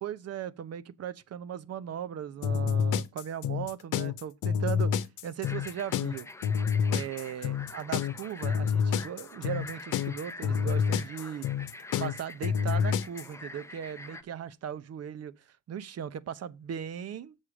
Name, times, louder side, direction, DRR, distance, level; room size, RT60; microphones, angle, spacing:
voice 1, 0.0-4.9 5.2-6.3 6.9-11.5 12.0-15.3 15.7-17.4, right 9 dB, 55° right, 0.8 m, -38 dB
sound 1, 2.4-13.3, left 7 dB, 85° left, 0.8 m, -28 dB
sound 2, 5.4-14.2, left 2 dB, 10° left, 0.7 m, -46 dB
7.5 x 4.9 x 6.1 m
cardioid pair, 90°, 30 cm